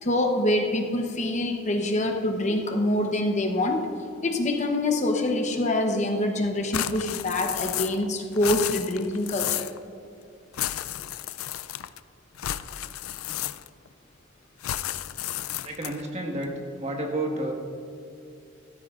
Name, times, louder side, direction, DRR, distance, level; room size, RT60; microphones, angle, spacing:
voice 1, 0.0-3.8 4.2-9.7, left 1 dB, 35° left, 3 dB, 0.8 m, -25 dB
sound 1, 6.7-8.1 8.3-9.8 10.5-12.0 12.4-13.9 14.6-16.1, left 12 dB, 85° left, 0.4 m, -32 dB
voice 2, 15.6-16.5 16.8-17.5, right 1 dB, 30° right, 1 dB, 1.5 m, -30 dB
15.5 x 13.0 x 2.5 m, 2.7 s
head